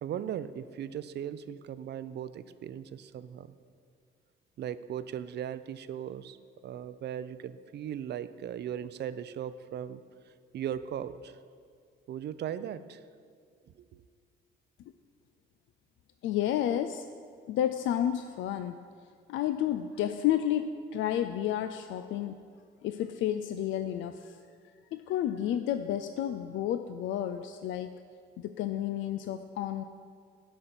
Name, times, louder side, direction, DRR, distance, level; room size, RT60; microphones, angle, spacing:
voice 1, 0.0-3.5 4.6-6.4 6.6-10.0 10.5-11.4 12.1-13.0 13.9-14.0, right 9 dB, 60° right, 14 dB, 0.5 m, -38 dB
voice 2, 16.2-17.1 17.5-18.9 19.3-22.5 22.8-24.4 24.9-28.0 28.4-29.8, left 11 dB, 80° left, 10 dB, 0.4 m, -31 dB
11.0 x 5.2 x 5.9 m, 2.1 s
cardioid pair, 90°, 20 cm